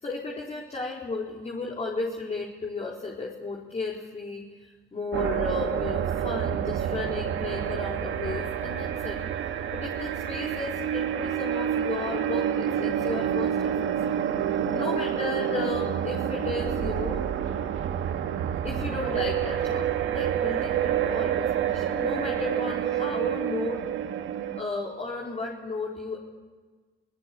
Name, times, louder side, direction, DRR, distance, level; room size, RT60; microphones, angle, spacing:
voice 1, 0.0-9.2 9.7-13.9 14.4-17.3 18.6-23.8 24.6-26.2, left 3 dB, 35° left, -3 dB, 4.4 m, -34 dB
sound 1, 5.1-24.6, right 9 dB, 80° right, 1.9 m, -28 dB
26.5 x 18.5 x 8.6 m, 1.4 s
cardioid pair, 90°, 20 cm